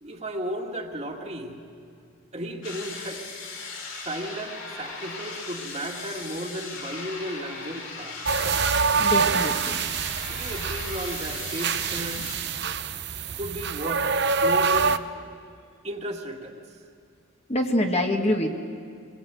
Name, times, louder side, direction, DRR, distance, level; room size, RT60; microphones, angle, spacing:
voice 1, 0.0-1.6 2.3-3.3 4.0-8.2 10.3-12.3 13.3-14.1 14.4-15.0 15.8-16.6, right 1 dB, 30° right, 1 dB, 2.2 m, -34 dB
sound 1, 2.6-12.4, left 4 dB, 65° left, 4.4 m, -38 dB
sound 2, 8.3-15.0, right 5 dB, 55° right, 0.7 m, -25 dB
voice 2, 9.0-9.8 17.5-18.5, left 1 dB, 30° left, 3 dB, 1.5 m, -25 dB
26.5 x 21.0 x 9.2 m, 2.4 s
head